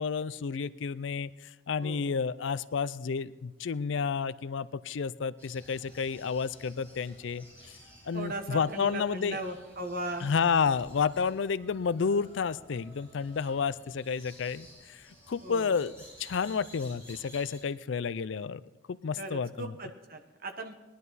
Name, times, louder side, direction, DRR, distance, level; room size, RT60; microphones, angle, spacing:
voice 1, 0.0-7.5 8.0-9.4 10.2-15.9 16.2-18.6 18.9-19.8, left 5 dB, 70° left, 16 dB, 0.4 m, -31 dB
sound 1, 5.4-17.6, equal, 10° right, 5.8 m, -54 dB
voice 2, 8.1-10.3 15.4-15.7 19.2-20.7, right 2 dB, 45° right, 5 dB, 1.3 m, -38 dB
19.5 x 11.0 x 4.1 m, 1.1 s
head